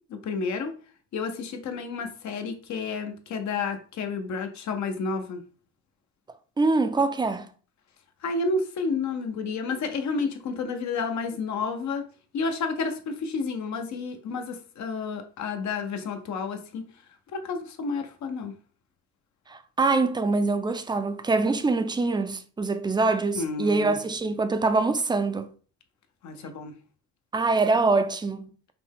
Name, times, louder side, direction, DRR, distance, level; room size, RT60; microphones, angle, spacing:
voice 1, 0.1-0.7 1.1-5.4 8.2-12.0 12.3-16.9 17.3-18.5 23.3-24.0 26.2-26.7, left 4 dB, 65° left, 0.8 m, -30 dB
voice 2, 6.6-7.5 19.5-25.5 27.3-28.5, right 3 dB, 15° right, 0.4 m, -24 dB
5.8 x 2.1 x 3.5 m
cardioid pair, 90°, 30 cm